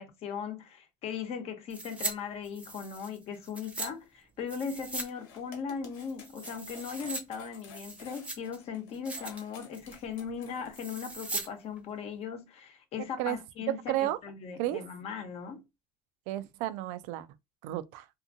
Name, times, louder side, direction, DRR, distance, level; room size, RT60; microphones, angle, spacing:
voice 1, 0.0-15.6, left 6 dB, 55° left, 0.9 m, -38 dB
sound 1, 1.7-2.1 2.4-3.9 4.5-5.1 5.4-5.5 5.9-7.2 7.6-8.6 8.9-9.4 9.7-10.0 10.7-11.5 11.8-11.9, right 2 dB, 10° right, 0.7 m, -39 dB
sound 2, 5.1-10.9, left 5 dB, 85° left, 1.1 m, -52 dB
voice 2, 13.9-14.2 14.6-14.8 16.3-17.3 17.6-18.1, right 14 dB, 75° right, 0.4 m, -32 dB
2.6 x 2.5 x 2.6 m
supercardioid pair, 95°, 12 cm